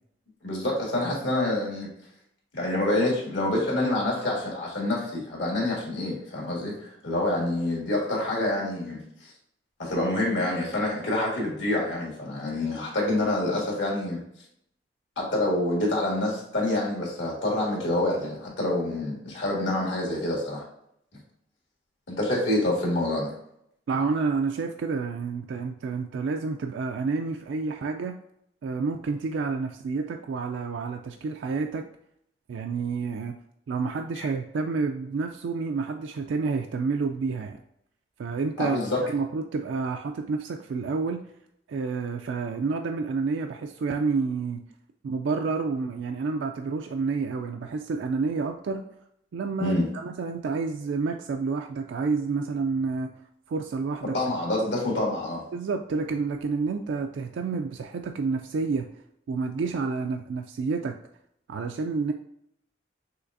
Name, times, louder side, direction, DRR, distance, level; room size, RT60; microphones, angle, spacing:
voice 1, 0.4-1.9 2.5-9.3 9.8-14.2 15.2-20.7 22.1-23.3 34.2-34.3 38.6-39.0 49.6-49.8 54.1-55.4, left 1 dB, 75° left, -2 dB, 1.8 m, -27 dB
voice 2, 23.9-28.1 28.6-31.9 32.5-33.3 33.7-37.6 38.2-38.8 39.0-41.2 41.7-44.6 45.0-48.8 49.3-49.8 50.0-53.1 53.5-54.1 55.5-58.9 59.3-60.9 61.5-62.1, right 4 dB, 80° right, 5 dB, 0.3 m, -29 dB
5.7 x 3.3 x 2.6 m, 0.75 s
head